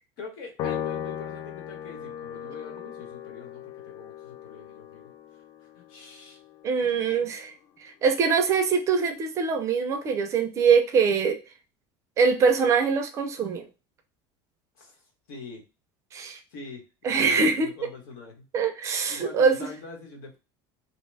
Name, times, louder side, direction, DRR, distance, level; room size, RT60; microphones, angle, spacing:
voice 1, 0.2-5.1 5.7-6.4 6.7-7.3 14.8-15.0 15.3-15.6 16.5-18.4 19.1-20.4, left 4 dB, 75° left, 2 dB, 1.2 m, -44 dB
Piano, 0.6-7.2, left 9 dB, 40° left, 0.4 m, -37 dB
voice 2, 6.6-7.5 7.8-11.4 12.2-13.6 16.1-16.4 17.0-17.7 18.5-19.6, right 5 dB, 25° right, 6 dB, 0.4 m, -23 dB
2.8 x 2.2 x 3.2 m, 0.30 s
cardioid pair, 165°, 11 cm